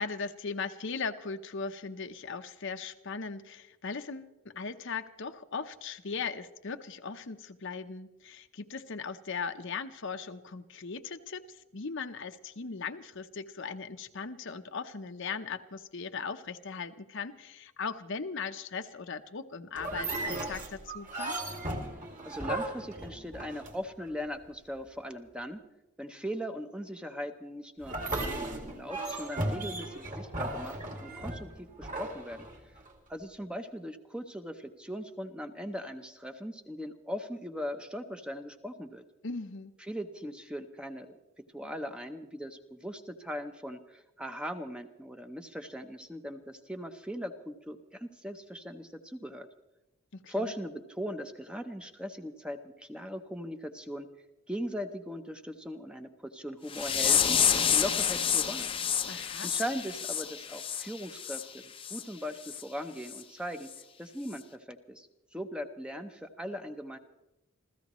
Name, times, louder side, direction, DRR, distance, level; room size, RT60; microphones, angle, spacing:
voice 1, 0.0-21.4 39.2-39.7 50.1-50.5 59.1-59.5, left 5 dB, 65° left, 8 dB, 0.9 m, -38 dB
sound 1, 19.8-24.1 27.8-32.9, right 2 dB, 40° right, 2.4 m, -36 dB
voice 2, 22.2-25.6 26.0-32.5 33.1-39.0 39.8-41.2 41.5-49.5 50.3-54.1 54.5-57.4 57.7-58.7 59.4-63.7 64.0-67.0, equal, 5° right, 7 dB, 0.8 m, -39 dB
sound 2, 56.7-61.4 61.8-62.0 62.5-62.6 63.1-63.2 63.7-63.8, left 8 dB, 25° left, 0.7 m, -29 dB
27.5 x 15.5 x 3.1 m, 0.96 s
head